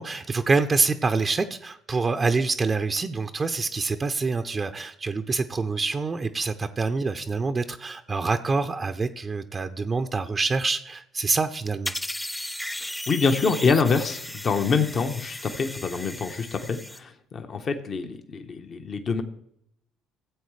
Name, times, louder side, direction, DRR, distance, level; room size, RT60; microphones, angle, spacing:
voice 1, 0.0-11.9, right 4 dB, 30° right, 8 dB, 0.6 m, -26 dB
sound 1, 11.9-17.0, left 1 dB, 10° left, 0.6 m, -36 dB
voice 2, 13.1-19.2, left 5 dB, 45° left, 6 dB, 1.0 m, -25 dB
16.0 x 7.8 x 3.3 m, 0.72 s
hypercardioid pair, 60°, 0 cm